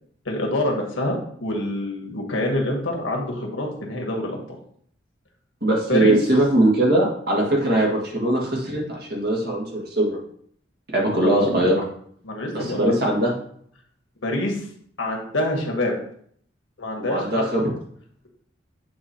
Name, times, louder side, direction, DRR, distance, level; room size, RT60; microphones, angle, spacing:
voice 1, 0.2-4.6 5.9-6.2 11.1-11.6 12.2-12.9 14.2-14.7 15.0-15.9 16.8-17.4, left 1 dB, 85° left, 1 dB, 1.5 m, -26 dB
voice 2, 5.6-10.2 10.9-11.8 12.5-13.3 17.0-17.7, right 1 dB, 55° right, -2 dB, 1.7 m, -21 dB
7.9 x 3.1 x 4.3 m, 0.64 s
head